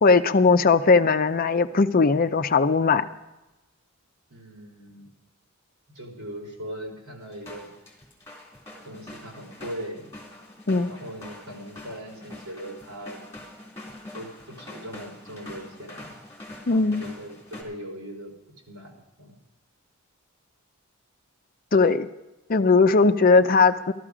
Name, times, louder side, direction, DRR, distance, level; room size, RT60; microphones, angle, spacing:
voice 1, 0.0-3.0 10.7-10.9 16.7-17.1 21.7-22.1 22.5-23.9, left 4 dB, 40° left, 10 dB, 0.5 m, -19 dB
voice 2, 4.3-5.1 5.9-7.7 8.8-10.1 10.9-13.2 14.1-16.1 16.7-18.3 18.7-18.9 19.2-19.3, equal, 80° right, -1 dB, 4.2 m, -39 dB
sound 1, 7.3-17.6, left 1 dB, 15° left, 3.4 m, -44 dB
14.0 x 13.0 x 4.9 m, 1.0 s
head